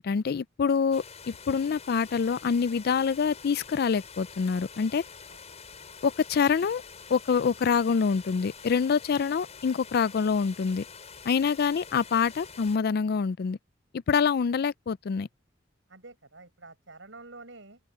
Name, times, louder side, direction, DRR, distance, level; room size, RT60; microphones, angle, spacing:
voice 1, 0.0-5.0 6.0-6.8 7.1-10.8 11.3-13.6 14.1-15.3, left 6 dB, 55° left, 0.4 m, -26 dB
sound 1, 0.9-12.8, left 5 dB, 35° left, 5.7 m, -47 dB
voice 2, 15.9-17.8, right 3 dB, 70° right, 6.9 m, -48 dB
open air
head